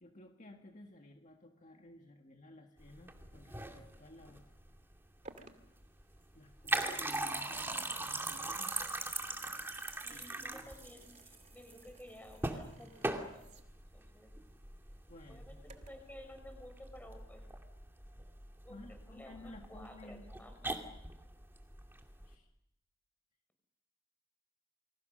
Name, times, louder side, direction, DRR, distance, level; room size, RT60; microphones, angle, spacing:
voice 1, 0.0-4.5 6.3-8.8 10.1-10.7 15.1-15.6 18.7-20.3 22.2-22.5, left 1 dB, 40° left, 3 dB, 1.9 m, -55 dB
sound 1, 2.8-22.3, right 2 dB, 10° right, 2.6 m, -41 dB
sound 2, 5.3-16.1, right 3 dB, 35° right, 2.2 m, -61 dB
voice 2, 10.0-13.5 13.9-14.3 15.3-17.4 18.6-20.9, left 1 dB, 10° left, 6 dB, 5.8 m, -54 dB
29.0 x 25.5 x 6.6 m, 0.83 s
head